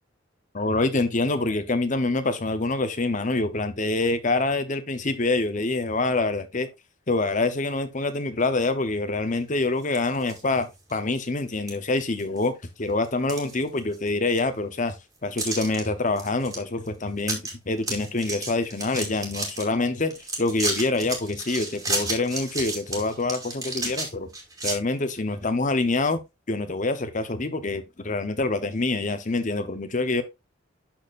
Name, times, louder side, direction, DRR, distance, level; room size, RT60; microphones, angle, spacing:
voice 1, 0.5-6.7 7.1-12.5 12.8-15.0 15.2-24.3 24.6-26.2 26.5-30.2, left 2 dB, 40° left, 0.9 m, -26 dB
sound 1, 9.8-10.4 10.9-11.0 11.7-11.8 12.2-12.6 13.0-14.1 14.4-14.5 15.4-15.8 16.2-16.6 16.9-17.0 17.2-17.5 17.8-19.6 20.1-24.7, right 2 dB, 20° right, 2.3 m, -31 dB
12.0 x 4.3 x 2.6 m
head